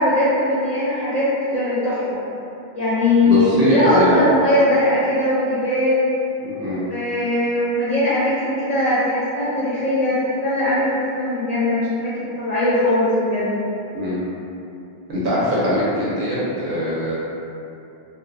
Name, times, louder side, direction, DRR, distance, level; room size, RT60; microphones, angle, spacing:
voice 1, 0.0-2.2 2.7-6.1 6.9-13.5, left 1 dB, 55° left, -10 dB, 0.5 m, -20 dB
voice 2, 3.3-4.2 6.4-6.8 13.9-14.2 15.1-17.2, equal, 60° right, -8 dB, 0.8 m, -21 dB
2.5 x 2.1 x 2.5 m, 2.7 s
omnidirectional pair, 1.1 m